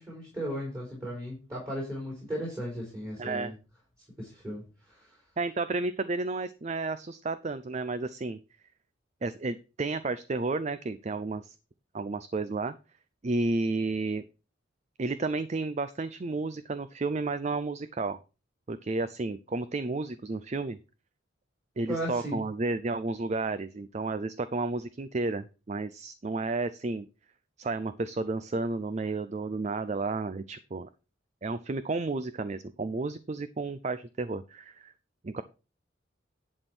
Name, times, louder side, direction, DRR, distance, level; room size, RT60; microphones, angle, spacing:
voice 1, 0.0-3.5 4.2-5.2 21.9-22.4, equal, 15° right, -4 dB, 4.1 m, -36 dB
voice 2, 3.2-3.5 5.4-8.4 9.2-11.6 11.9-12.7 13.2-14.2 15.0-18.2 18.7-20.8 21.8-27.1 27.6-30.9 31.4-34.9 35.2-35.4, right 3 dB, 35° right, 13 dB, 0.5 m, -32 dB
11.0 x 4.3 x 6.2 m, 0.32 s
head